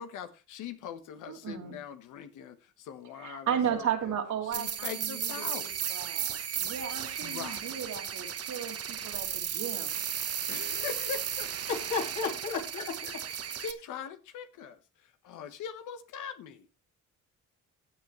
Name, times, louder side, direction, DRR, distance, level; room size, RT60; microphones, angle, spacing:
voice 1, 0.0-3.9 4.6-5.7 7.2-7.7 10.5-11.6 12.2-12.6 13.5-14.8 15.2-16.7, left 7 dB, 85° left, 1.3 m, -41 dB
voice 2, 1.3-1.8 3.1-10.0, right 8 dB, 70° right, 2.7 m, -35 dB
sound 1, 4.5-13.7, right 8 dB, 50° right, 1.2 m, -35 dB
voice 3, 11.7-13.7, left 4 dB, 65° left, 3.4 m, -34 dB
15.5 x 8.5 x 3.1 m
cardioid pair, 90°, 30 cm